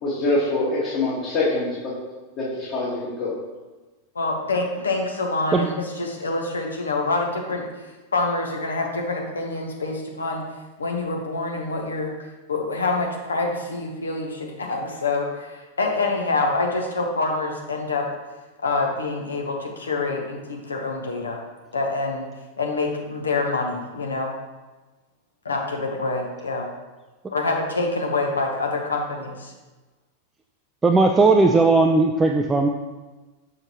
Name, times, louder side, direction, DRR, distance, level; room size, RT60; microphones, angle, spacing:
voice 1, 0.0-1.9 2.4-3.3, left 2 dB, 40° left, -8 dB, 1.9 m, -24 dB
voice 2, 4.1-7.6 8.1-10.4 10.8-12.1 12.5-18.1 18.6-21.4 21.7-22.3 22.6-24.3 25.4-26.6 27.3-29.5, left 3 dB, 75° left, 1 dB, 1.1 m, -26 dB
voice 3, 30.8-32.7, right 3 dB, 15° right, 3 dB, 0.4 m, -17 dB
6.4 x 6.3 x 3.0 m, 1.2 s
figure-of-eight pair, 90°, 0 cm